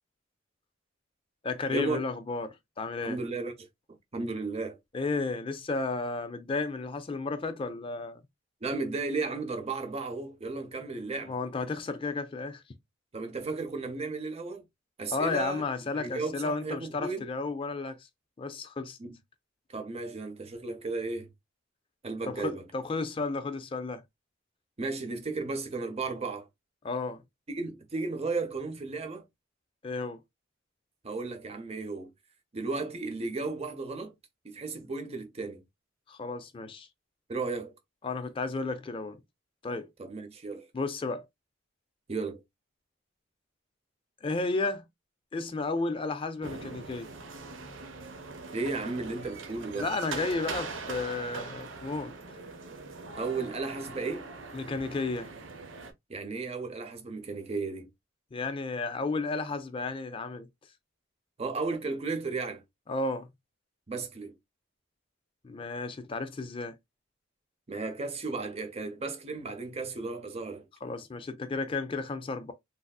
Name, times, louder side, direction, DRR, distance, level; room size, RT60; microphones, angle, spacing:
voice 1, 1.4-3.2 4.9-8.2 11.2-12.6 15.1-18.0 18.4-19.0 22.3-24.0 26.8-27.2 29.8-30.2 36.1-36.9 38.0-39.2 39.6-39.9 40.7-41.2 44.2-44.8 45.3-47.1 49.8-52.1 54.5-55.3 58.3-60.5 62.9-63.3 65.4-66.8 70.8-72.5, left 3 dB, 25° left, 0.3 m, -33 dB
voice 2, 3.0-3.5 4.1-4.8 8.6-11.4 13.1-14.6 15.0-15.7 15.9-17.3 19.0-19.2 19.7-21.3 22.0-22.7 24.8-26.5 27.5-29.3 31.0-32.1 32.5-34.1 34.4-35.6 37.3-37.7 40.0-40.7 42.1-42.4 48.5-49.9 53.2-54.3 56.1-57.9 61.4-62.6 63.9-64.3 67.7-70.7, right 3 dB, 30° right, 0.6 m, -34 dB
sound 1, 46.4-55.9, right 4 dB, 75° right, 0.7 m, -41 dB
3.3 x 2.6 x 2.3 m
head